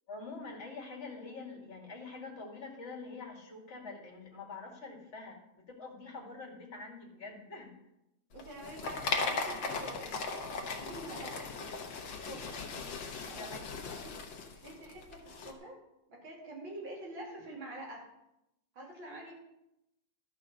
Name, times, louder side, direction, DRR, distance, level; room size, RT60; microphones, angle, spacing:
voice 1, 0.1-7.7 13.4-13.8, left 3 dB, 35° left, -1 dB, 2.2 m, -45 dB
sound 1, 8.3-15.5, left 4 dB, 65° left, 1.8 m, -38 dB
voice 2, 8.3-10.2 10.8-11.5 12.0-12.6 13.3-13.5 14.0-14.2 14.6-15.8 16.1-18.1 18.7-19.3, right 1 dB, 70° right, -3 dB, 3.4 m, -46 dB
12.5 x 5.5 x 6.4 m, 0.88 s
omnidirectional pair, 2.3 m